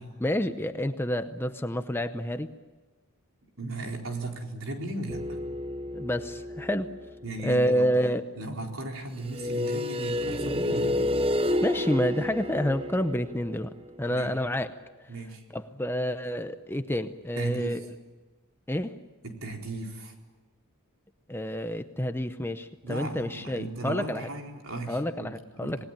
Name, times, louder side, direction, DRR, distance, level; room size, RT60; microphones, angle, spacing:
voice 1, 0.2-2.5 5.9-7.0 7.4-8.2 11.6-13.7 14.0-14.8 15.5-17.8 18.7-19.0 21.3-24.3 24.9-25.8, equal, 10° left, 9 dB, 0.7 m, -28 dB
voice 2, 3.6-5.4 7.2-7.9 8.3-11.2 14.1-14.3 15.1-15.4 17.4-17.9 19.2-20.1 22.8-25.3 25.6-25.8, right 2 dB, 65° right, 1 dB, 4.3 m, -36 dB
sound 1, 5.1-7.4 9.2-14.0, left 1 dB, 25° right, 0.7 m, -30 dB
27.0 x 19.5 x 9.1 m, 1.3 s
head